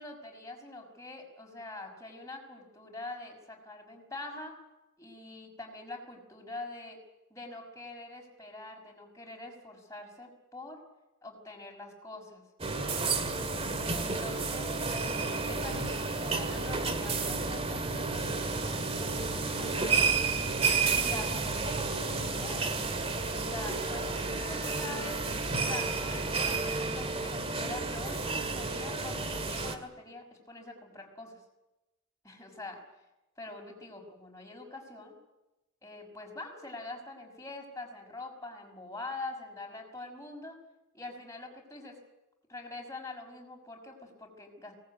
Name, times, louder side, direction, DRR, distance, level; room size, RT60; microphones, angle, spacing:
voice 1, 0.0-4.5 5.0-7.0 7.3-10.8 11.2-12.4 13.9-15.2 15.4-20.1 20.9-22.8 23.5-25.2 25.6-31.4 32.2-32.8 33.4-35.1 35.8-40.6 40.9-42.0 42.5-44.7, left 2 dB, 15° left, 1 dB, 5.7 m, -44 dB
sound 1, 12.6-29.7, right 4 dB, 25° right, 2.2 m, -31 dB
24.0 x 19.5 x 9.6 m, 1.0 s
head